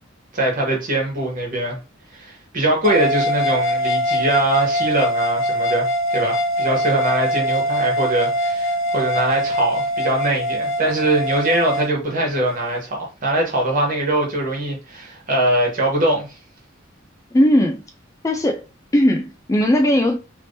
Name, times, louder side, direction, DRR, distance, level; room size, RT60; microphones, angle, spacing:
voice 1, 0.3-1.8 2.1-16.3, right 1 dB, 45° right, 1.3 m, -22 dB
sound 1, 2.8-11.9, equal, 80° left, 0.6 m, -22 dB
voice 2, 17.3-17.8 18.2-18.6 18.9-20.2, left 1 dB, 15° left, 0.3 m, -17 dB
3.4 x 2.9 x 2.6 m
head